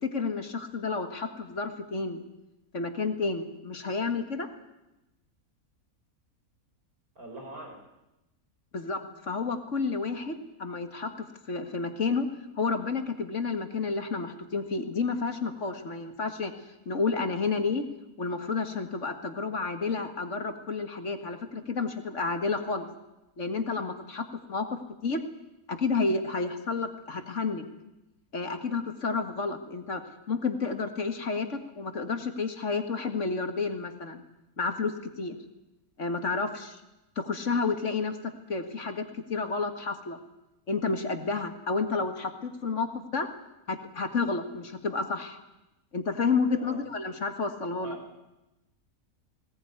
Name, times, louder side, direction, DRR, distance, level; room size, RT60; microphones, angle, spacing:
voice 1, 0.0-2.2 2.7-4.5 8.7-11.1 11.5-12.3 12.6-16.5 16.9-17.9 18.2-22.9 23.4-24.7 25.0-25.2 25.7-27.7 28.3-30.0 30.3-34.2 34.6-35.4 36.0-36.8 37.2-38.2 38.5-39.0 39.3-40.2 40.7-43.3 43.7-45.4 45.9-48.0, left 4 dB, 55° left, 7 dB, 2.0 m, -30 dB
voice 2, 7.2-7.8 46.6-46.8 47.8-48.0, right 1 dB, 75° right, 2 dB, 6.0 m, -42 dB
20.0 x 18.5 x 9.5 m, 0.95 s
omnidirectional pair, 1.6 m